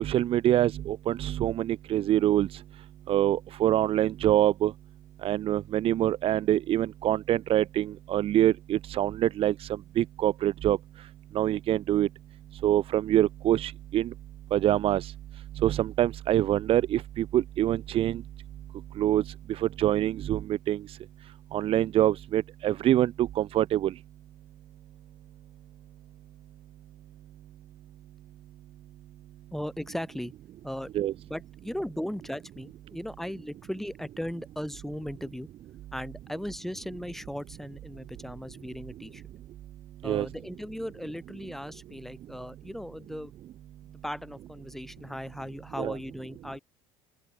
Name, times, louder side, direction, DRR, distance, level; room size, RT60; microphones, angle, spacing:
voice 1, 0.0-4.7 5.2-12.1 12.5-14.1 14.5-24.0 30.9-31.1 40.0-40.3 45.8-46.0, right 12 dB, 45° right, 0.7 m, -26 dB
voice 2, 29.5-30.3 30.6-30.9 31.3-35.5 35.9-39.2 40.0-43.3 44.0-46.6, equal, ahead, 2.2 m, -37 dB
open air
supercardioid pair, 100°, 13 cm